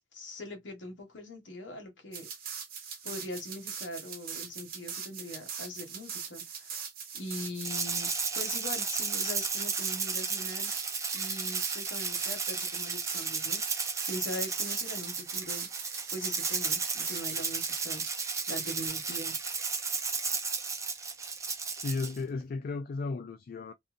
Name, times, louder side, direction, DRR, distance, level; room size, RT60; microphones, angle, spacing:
voice 1, 0.1-2.3 3.0-6.8 7.1-10.8 11.1-15.7 16.1-18.0 18.5-19.4 19.7-19.8, left 1 dB, 80° left, 1.1 m, -42 dB
sound 1, 2.1-18.9, right 7 dB, 55° right, 0.8 m, -41 dB
Rattle (instrument), 7.6-22.2, right 5 dB, 15° right, 0.4 m, -33 dB
voice 2, 21.8-23.7, left 3 dB, 50° left, 0.3 m, -34 dB
2.6 x 2.6 x 2.4 m
head